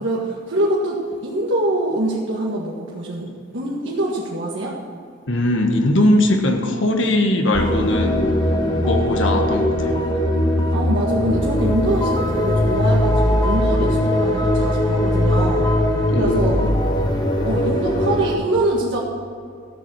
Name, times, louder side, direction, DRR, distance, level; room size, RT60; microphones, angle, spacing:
voice 1, 0.0-4.8 10.7-15.7 16.1-16.6 17.4-19.0, right 1 dB, 65° right, -4 dB, 1.8 m, -24 dB
voice 2, 5.3-10.0 16.1-16.8, left 1 dB, 65° left, 3 dB, 1.5 m, -20 dB
sound 1, 7.5-18.3, left 1 dB, 20° left, 1.3 m, -20 dB
14.5 x 7.6 x 6.3 m, 2.4 s
head